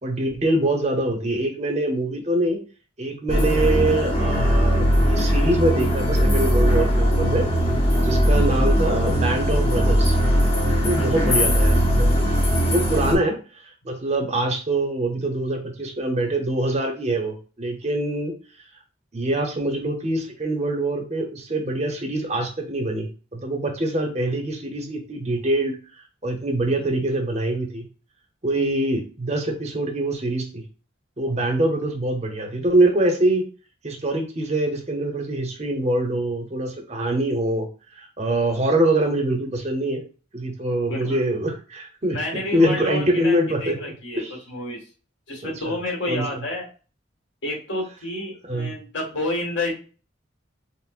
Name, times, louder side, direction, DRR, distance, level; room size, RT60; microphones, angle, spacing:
voice 1, 0.0-2.6 3.0-7.5 8.0-10.2 10.8-12.3 12.7-18.3 19.1-25.8 26.2-27.9 28.4-30.6 31.2-33.5 33.8-37.7 37.9-40.0 40.3-44.4 45.4-45.7 46.1-46.4 48.5-48.8, right 1 dB, 35° right, 4 dB, 0.7 m, -24 dB
sound 1, 3.3-13.1, equal, 30° left, 0.8 m, -19 dB
voice 2, 11.0-11.5 40.9-41.2 42.1-43.3 43.6-44.8 45.3-46.7 47.4-49.7, left 1 dB, 65° left, -2 dB, 1.7 m, -30 dB
5.7 x 2.1 x 2.4 m, 0.36 s
head